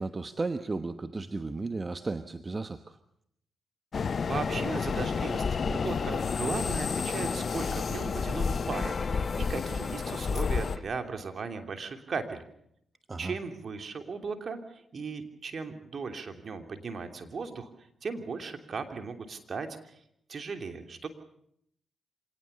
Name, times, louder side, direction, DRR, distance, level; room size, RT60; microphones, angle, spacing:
voice 1, 0.0-3.0 13.1-13.4, right 3 dB, 35° right, 10 dB, 1.2 m, -34 dB
sound 1, 3.9-10.8, left 5 dB, 55° left, 0.9 m, -30 dB
sound 2, 4.3-10.8, left 3 dB, 35° left, 2.1 m, -41 dB
voice 2, 4.3-12.4 13.2-17.7 18.0-19.9 20.3-21.1, right 4 dB, 55° right, 6 dB, 3.0 m, -37 dB
26.0 x 18.5 x 6.9 m, 0.73 s
supercardioid pair, 50°, 0 cm